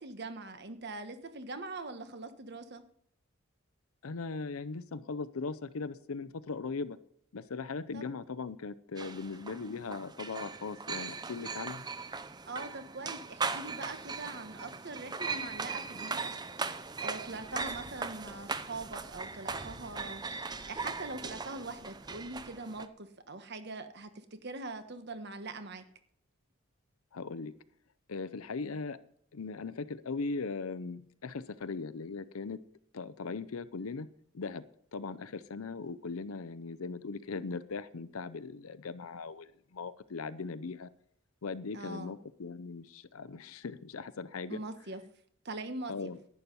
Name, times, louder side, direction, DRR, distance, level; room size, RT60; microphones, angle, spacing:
voice 1, 0.0-2.8 7.9-8.0 12.5-16.3 16.6-25.8 41.7-42.1 44.5-45.0 45.4-46.1, right 2 dB, 50° right, 9 dB, 1.3 m, -42 dB
voice 2, 4.0-7.0 7.3-11.8 27.1-27.5 28.1-29.0 29.3-32.6 32.9-34.1 34.3-40.9 41.4-44.6 45.9-46.2, left 4 dB, 85° left, 15 dB, 0.6 m, -39 dB
sound 1, 9.0-22.9, right 4 dB, 20° right, 0.6 m, -39 dB
11.5 x 9.7 x 5.5 m, 0.67 s
head